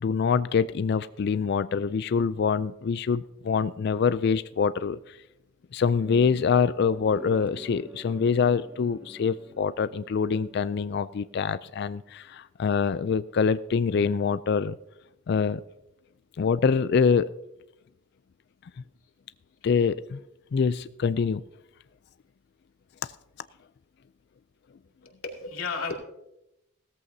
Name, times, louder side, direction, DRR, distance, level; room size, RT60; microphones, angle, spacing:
voice 1, 0.0-5.2 5.7-14.8 15.3-15.6 16.4-17.3 19.6-20.2 20.5-21.4, left 6 dB, 55° left, 14 dB, 0.3 m, -25 dB
sound 1, 6.0-11.1, equal, 10° right, 0.5 m, -47 dB
voice 2, 25.0-25.9, left 4 dB, 75° left, 1 dB, 2.5 m, -33 dB
17.0 x 14.0 x 2.7 m, 0.85 s
head